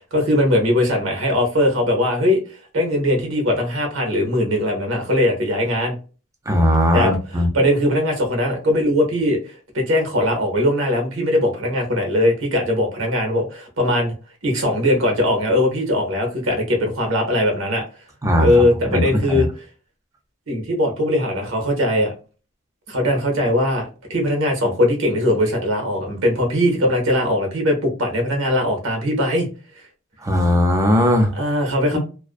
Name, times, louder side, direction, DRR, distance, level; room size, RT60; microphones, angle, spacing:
voice 1, 0.1-2.4 2.7-5.9 6.9-7.1 7.5-9.4 9.7-14.1 14.4-17.8 18.4-19.5 20.5-22.1 22.9-29.5 31.3-32.0, left 1 dB, 80° right, 0.9 m, -20 dB
voice 2, 6.5-7.5 18.2-19.4 30.2-31.3 31.9-32.0, equal, 15° right, 0.5 m, -18 dB
2.4 x 2.2 x 2.4 m
head